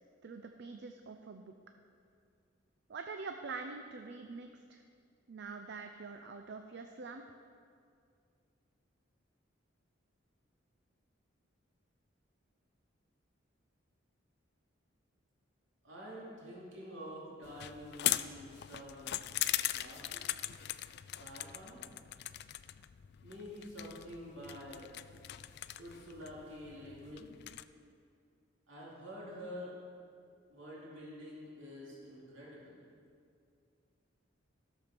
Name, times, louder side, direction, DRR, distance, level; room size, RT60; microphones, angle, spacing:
voice 1, 0.2-1.5 2.9-4.8 5.3-7.4, right 4 dB, 60° right, 5 dB, 0.5 m, -45 dB
voice 2, 15.8-19.2 19.7-20.2 21.1-21.8 23.2-24.9 25.8-27.3 28.7-29.7 30.5-32.8, equal, 75° right, -6 dB, 2.7 m, -48 dB
sound 1, 17.4-27.6, left 14 dB, 55° left, 0.3 m, -40 dB
12.5 x 7.0 x 5.9 m, 2.3 s
head